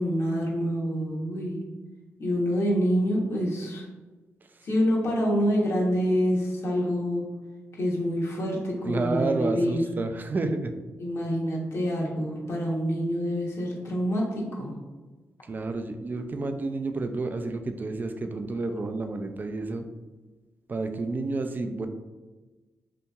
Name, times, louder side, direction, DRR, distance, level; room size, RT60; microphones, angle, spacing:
voice 1, 0.0-1.6 2.2-3.8 4.6-7.2 7.7-9.8 11.0-14.8, equal, 60° left, -3 dB, 0.8 m, -26 dB
voice 2, 8.8-10.7 15.5-19.8 20.7-21.9, right 3 dB, 35° right, 7 dB, 0.3 m, -30 dB
2.8 x 2.6 x 2.3 m, 1.2 s
cardioid pair, 55°, 5 cm